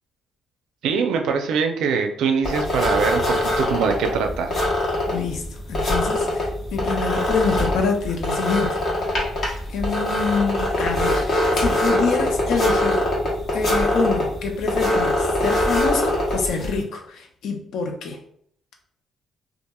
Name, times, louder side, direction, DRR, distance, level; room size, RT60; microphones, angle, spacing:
voice 1, 0.8-4.5, right 5 dB, 85° right, 5 dB, 0.4 m, -23 dB
sound 1, 2.4-16.8, left 1 dB, 55° left, 1.0 m, -23 dB
voice 2, 5.1-8.8 9.7-11.3 11.6-13.1 13.5-18.2, left 4 dB, 75° left, 3 dB, 0.5 m, -26 dB
2.8 x 2.4 x 2.2 m, 0.64 s
cardioid pair, 90°, 0 cm